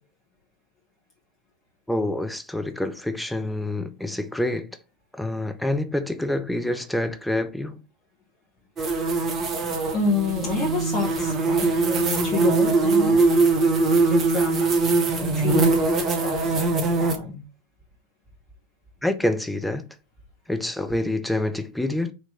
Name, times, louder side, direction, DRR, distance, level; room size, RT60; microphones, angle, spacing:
voice 1, 1.9-4.7 5.1-7.8 19.0-19.9 20.5-22.1, left 1 dB, 5° left, 0.5 m, -27 dB
sound 1, 8.8-17.2, right 3 dB, 25° right, 0.8 m, -22 dB
voice 2, 9.9-13.3 14.1-14.8 15.1-15.7 16.0-17.4, left 4 dB, 20° left, 1.2 m, -28 dB
4.2 x 2.9 x 3.6 m
figure-of-eight pair, 90°, 0 cm